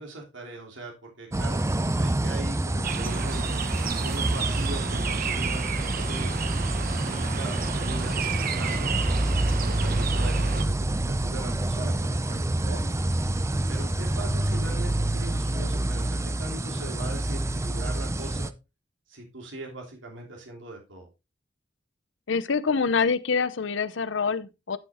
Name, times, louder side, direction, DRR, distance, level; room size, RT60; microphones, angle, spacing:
voice 1, 0.0-3.5 4.0-6.4 7.0-12.9 13.4-18.5 19.1-21.1, right 2 dB, 75° right, 3.1 m, -40 dB
sound 1, 1.3-18.5, right 1 dB, 15° right, 0.5 m, -27 dB
sound 2, 2.8-10.6, right 6 dB, 50° right, 0.8 m, -33 dB
voice 2, 22.3-24.8, left 5 dB, 70° left, 0.7 m, -25 dB
12.0 x 6.3 x 3.5 m
head